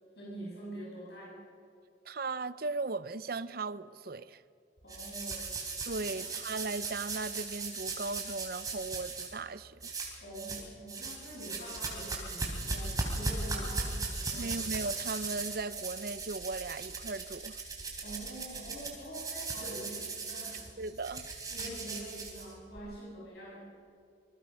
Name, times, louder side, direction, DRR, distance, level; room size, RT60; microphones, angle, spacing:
voice 1, 0.1-1.4 4.8-5.5 6.1-6.3 10.2-14.6 18.0-20.6 21.5-23.7, right 1 dB, 60° left, 6.7 m, -45 dB
voice 2, 2.1-4.4 5.9-9.9 14.3-17.6 20.8-21.3, right 3 dB, 50° right, 0.6 m, -37 dB
sound 1, 4.9-9.3 9.8-10.6 10.9-22.8, right 3 dB, 20° right, 3.4 m, -38 dB
26.5 x 21.0 x 5.5 m
head